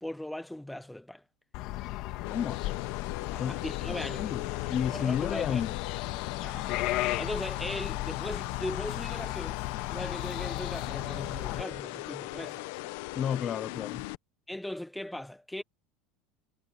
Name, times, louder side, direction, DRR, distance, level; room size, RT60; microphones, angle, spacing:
voice 1, 0.0-1.2 3.3-5.6 6.4-6.7 7.2-9.6 9.9-12.6 14.5-15.6, left 1 dB, 5° left, 1.1 m, -39 dB
sound 1, 1.5-11.6, left 17 dB, 50° left, 2.1 m, -35 dB
sound 2, 2.2-14.2, left 20 dB, 65° left, 1.0 m, -39 dB
voice 2, 2.3-2.8 3.4-3.5 4.2-5.8 13.2-14.0, left 8 dB, 25° left, 0.6 m, -32 dB
cardioid pair, 170°, 0 cm